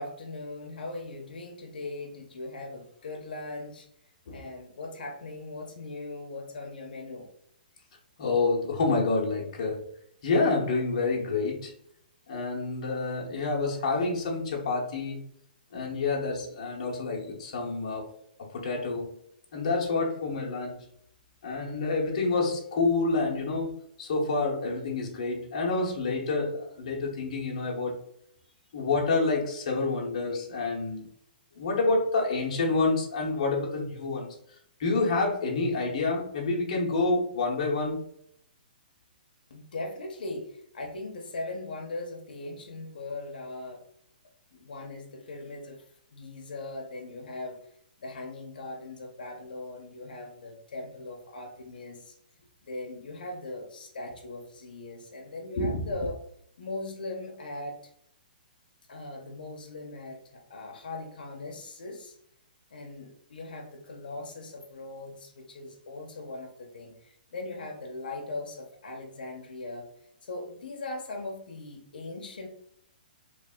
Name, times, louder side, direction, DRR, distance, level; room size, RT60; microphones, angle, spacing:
voice 1, 0.0-3.9 4.3-7.3 39.5-43.8 44.5-45.9 46.1-47.6 48.0-52.2 52.6-56.2 56.6-57.9 58.9-62.2 62.7-69.9 70.2-72.5, left 2 dB, 70° left, 1 dB, 0.7 m, -39 dB
voice 2, 8.2-9.8 10.2-11.7 12.3-15.2 15.7-18.1 18.5-19.1 19.5-20.8 21.4-28.0 28.7-31.1 31.5-34.3 34.8-38.0 55.6-55.8, left 3 dB, 40° left, -1 dB, 0.9 m, -28 dB
3.2 x 2.4 x 3.6 m, 0.72 s
hypercardioid pair, 175°, 5 cm